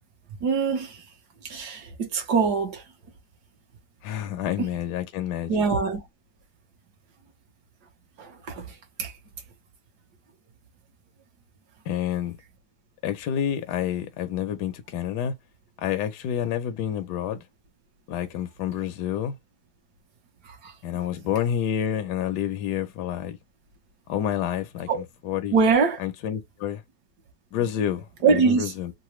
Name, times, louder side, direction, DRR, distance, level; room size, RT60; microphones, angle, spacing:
voice 1, 0.4-1.0 1.5-2.8 5.5-6.0 8.2-8.7 9.0-9.1 20.6-20.7 24.9-25.0 25.5-26.0 28.2-28.7, right 5 dB, 55° right, 1.5 m, -23 dB
voice 2, 4.0-5.6 11.9-12.4 13.0-15.3 15.8-17.4 18.1-19.4 20.8-23.4 24.1-25.6 26.0-26.8 27.5-28.9, left 10 dB, 65° left, 1.1 m, -29 dB
3.9 x 2.2 x 3.1 m
omnidirectional pair, 2.3 m